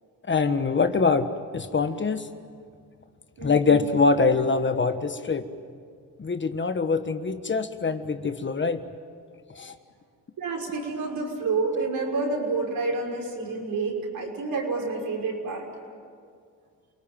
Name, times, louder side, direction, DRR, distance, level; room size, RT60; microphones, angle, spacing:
voice 1, 0.3-1.3 1.5-2.3 3.4-5.5 6.2-8.8 9.5-9.7, left 4 dB, 30° left, 9 dB, 1.4 m, -24 dB
voice 2, 3.4-3.9 10.4-15.7, right 3 dB, 70° right, 0 dB, 6.0 m, -29 dB
28.5 x 19.5 x 9.1 m, 2.1 s
cardioid pair, 85°, 35 cm